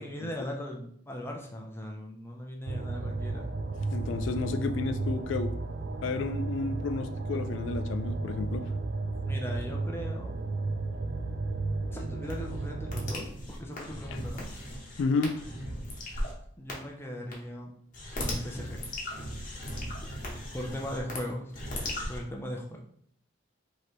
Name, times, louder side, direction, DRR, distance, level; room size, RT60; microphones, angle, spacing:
voice 1, 0.0-3.5 9.3-10.4 11.9-14.5 16.6-17.7 18.1-18.8 20.5-21.5 22.1-22.8, equal, 10° left, 0 dB, 0.5 m, -39 dB
sound 1, 2.7-13.1, right 3 dB, 50° right, 0.4 m, -33 dB
voice 2, 3.9-5.5 6.0-8.7 15.0-15.3, left 4 dB, 70° left, 8 dB, 0.3 m, -31 dB
sound 2, 12.2-16.3 16.7-16.8 17.3-17.4 17.9-21.2 21.5-22.2, left 1 dB, 40° left, 1.0 m, -37 dB
5.0 x 2.9 x 3.0 m, 0.66 s
head